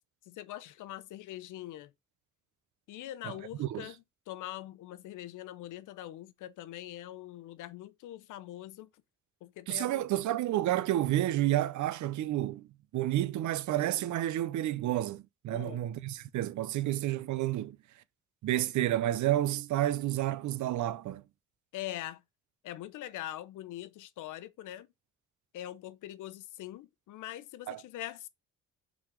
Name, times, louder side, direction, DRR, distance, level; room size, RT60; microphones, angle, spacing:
voice 1, 0.3-1.9 2.9-8.9 9.4-10.1 15.5-15.8 21.7-22.2 22.6-24.9 25.5-28.3, left 13 dB, 85° left, 0.8 m, -43 dB
voice 2, 9.7-12.7 12.9-17.8 18.4-21.2 27.7-27.8, right 13 dB, 70° right, 0.7 m, -30 dB
5.8 x 4.1 x 5.0 m
cardioid pair, 90°, 30 cm